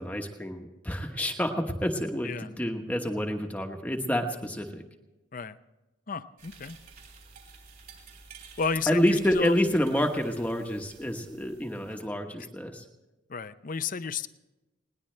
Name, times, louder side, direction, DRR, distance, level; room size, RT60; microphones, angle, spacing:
voice 1, 0.0-4.8 8.9-12.8, equal, 5° left, 3 dB, 1.1 m, -28 dB
voice 2, 6.1-6.8 8.6-9.6 13.3-14.3, left 5 dB, 40° left, 13 dB, 0.5 m, -32 dB
sound 1, 6.4-12.1, right 5 dB, 50° right, 3.6 m, -51 dB
20.5 x 18.5 x 3.3 m, 1.0 s
head